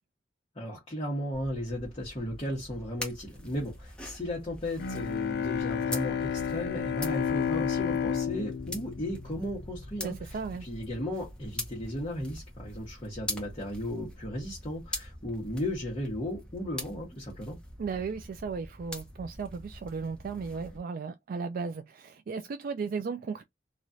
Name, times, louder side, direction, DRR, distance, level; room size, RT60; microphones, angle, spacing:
voice 1, 0.5-17.6, left 1 dB, 30° left, 1.1 m, -35 dB
sound 1, 1.3-20.8, left 1 dB, 5° left, 0.9 m, -43 dB
Bowed string instrument, 4.8-10.0, left 7 dB, 65° left, 0.4 m, -31 dB
voice 2, 10.0-10.7 17.8-23.4, right 5 dB, 55° right, 0.3 m, -35 dB
3.0 x 2.4 x 2.6 m
head